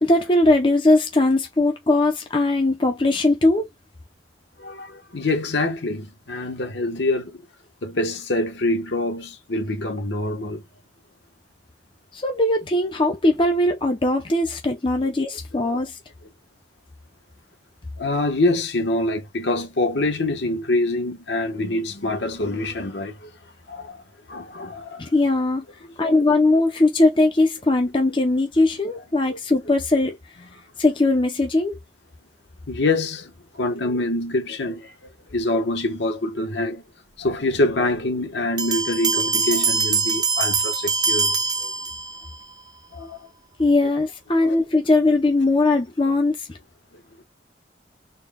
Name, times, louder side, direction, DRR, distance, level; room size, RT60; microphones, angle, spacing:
voice 1, 0.0-3.7 12.1-16.0 25.0-25.6 26.0-30.1 30.8-31.7 43.6-46.4, left 2 dB, 25° left, 0.5 m, -20 dB
voice 2, 4.6-7.4 7.8-10.6 15.6-15.8 18.0-23.3 23.7-24.0 24.3-25.1 26.0-26.3 29.3-29.4 32.7-34.9 35.3-36.8 37.2-41.7 42.9-43.2 43.8-43.9 44.4-44.6 46.0-46.1, left 2 dB, 70° left, 1.1 m, -25 dB
Bell, 38.6-42.4, right 4 dB, 20° right, 0.6 m, -23 dB
4.0 x 2.2 x 3.5 m
head